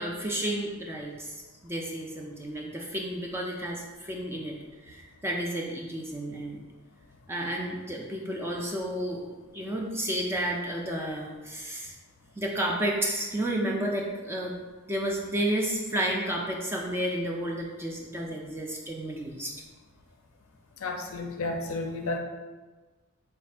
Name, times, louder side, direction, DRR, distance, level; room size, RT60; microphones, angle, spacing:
voice 1, 0.0-4.6 4.8-6.6 7.3-9.2 9.5-11.9 12.4-14.5 14.9-19.5, right 1 dB, 10° right, -1 dB, 0.4 m, -31 dB
voice 2, 20.8-22.2, left 2 dB, 60° left, 3 dB, 0.4 m, -32 dB
3.4 x 2.4 x 4.3 m, 1.3 s
head